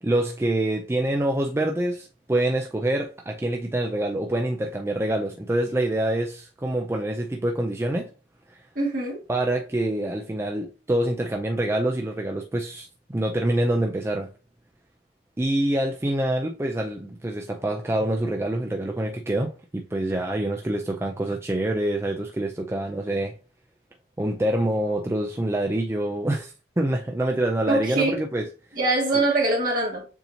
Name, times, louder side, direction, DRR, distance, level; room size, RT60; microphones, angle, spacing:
voice 1, 0.0-8.1 8.5-8.7 9.3-14.3 15.4-23.3 24.2-28.8 29.1-29.3, right 1 dB, 15° right, 0.4 m, -26 dB
voice 2, 8.8-9.2 27.7-28.2 28.8-30.1, right 2 dB, 50° right, 1.7 m, -23 dB
6.9 x 2.7 x 2.7 m
head